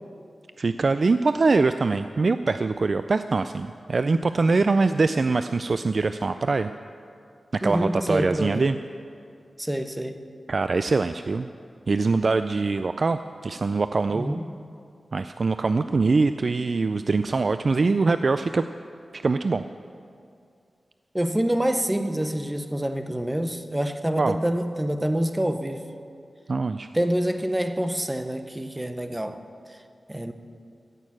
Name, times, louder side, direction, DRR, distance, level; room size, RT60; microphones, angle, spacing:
voice 1, 0.6-6.7 7.5-8.8 10.5-11.5 11.9-14.4 15.1-18.7 19.1-19.6 24.2-24.4 26.5-26.9, right 3 dB, 45° right, 10 dB, 0.3 m, -23 dB
voice 2, 7.6-8.6 9.6-10.2 14.1-14.5 21.1-25.9 26.9-29.4 30.1-30.3, right 1 dB, 10° right, 8 dB, 0.7 m, -26 dB
15.5 x 6.6 x 8.6 m, 2.4 s
wide cardioid pair, 140°, 0 cm